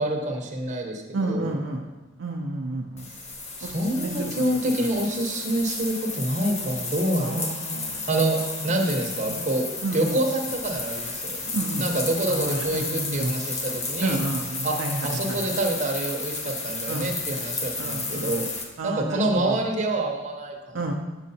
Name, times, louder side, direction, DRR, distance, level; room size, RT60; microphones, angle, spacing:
voice 1, 0.0-1.6 3.6-7.5 8.1-8.4 8.6-9.7 9.9-11.4 11.8-14.2 14.6-14.8 15.0-18.4 18.8-20.8, right 1 dB, 40° right, 1 dB, 0.8 m, -27 dB
voice 2, 1.1-1.9 2.2-3.0 3.6-4.3 7.2-8.0 8.4-8.6 9.3-9.4 9.8-10.2 11.5-11.8 12.3-13.3 14.0-15.4 16.9-17.1 17.8-18.4 18.8-19.6 20.7-20.9, right 2 dB, 70° right, 1 dB, 0.5 m, -30 dB
sound 1, 3.0-18.6, left 3 dB, 35° left, 0.7 m, -32 dB
6.5 x 6.1 x 2.7 m, 1.2 s
head